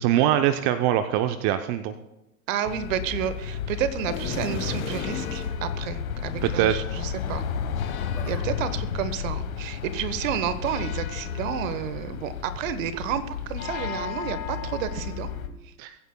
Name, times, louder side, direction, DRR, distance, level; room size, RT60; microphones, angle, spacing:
voice 1, 0.0-1.9 6.4-6.7 15.8-15.9, right 11 dB, 45° right, 9 dB, 0.7 m, -23 dB
voice 2, 2.5-7.4 8.2-15.3 15.6-15.7, right 9 dB, 65° right, 13 dB, 1.2 m, -31 dB
sound 1, 2.6-15.5, left 7 dB, 75° left, 1.4 m, -32 dB
sound 2, 4.0-5.6, left 6 dB, 35° left, 3.0 m, -32 dB
Laughter, 7.8-8.5 8.7-10.1 11.0-11.4 12.7-12.9 13.8-13.9, left 1 dB, 5° left, 2.8 m, -48 dB
22.5 x 9.6 x 2.2 m, 0.94 s
hypercardioid pair, 100°, 43 cm